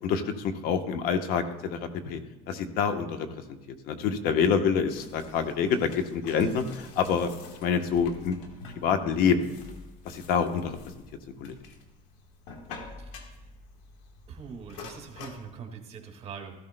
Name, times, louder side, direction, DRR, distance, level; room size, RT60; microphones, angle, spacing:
voice 1, 0.0-2.2 2.5-3.3 3.8-7.3 7.6-8.4 8.7-9.5 10.0-10.8 11.4-11.5, left 6 dB, 65° left, 7 dB, 1.0 m, -26 dB
sound 1, 4.9-15.5, left 4 dB, 80° left, 1.5 m, -47 dB
voice 2, 14.3-16.6, right 6 dB, 40° right, 3 dB, 1.8 m, -43 dB
14.0 x 13.0 x 2.2 m, 1.1 s
cardioid pair, 115°, 16 cm